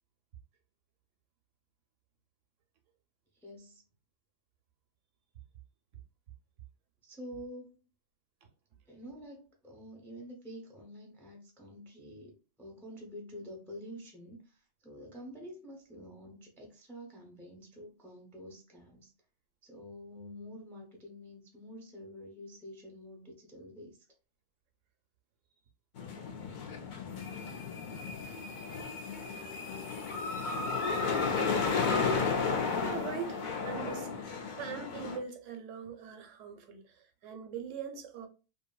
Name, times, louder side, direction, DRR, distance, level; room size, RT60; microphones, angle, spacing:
voice 1, 3.4-3.8 7.0-7.8 8.9-19.1 19.6-24.0, equal, 5° left, 0.4 m, -48 dB
sound 1, 26.0-35.2, left 5 dB, 65° left, 0.5 m, -33 dB
voice 2, 32.8-34.1 34.6-38.3, right 6 dB, 80° right, 0.9 m, -41 dB
2.6 x 2.6 x 2.2 m
omnidirectional pair, 1.3 m